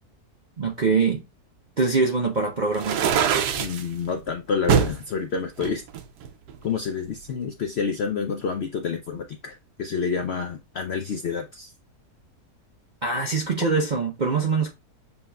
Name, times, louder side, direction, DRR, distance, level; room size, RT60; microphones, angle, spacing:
voice 1, 0.6-1.2 1.8-3.0 13.0-14.7, right 4 dB, 55° right, 0.5 m, -23 dB
sound 1, 2.7-3.8 4.7-5.0 5.6-6.7, right 8 dB, 80° right, 1.2 m, -23 dB
voice 2, 3.6-5.8 6.6-11.7, left 5 dB, 70° left, 0.6 m, -28 dB
7.1 x 2.9 x 2.3 m
omnidirectional pair, 1.7 m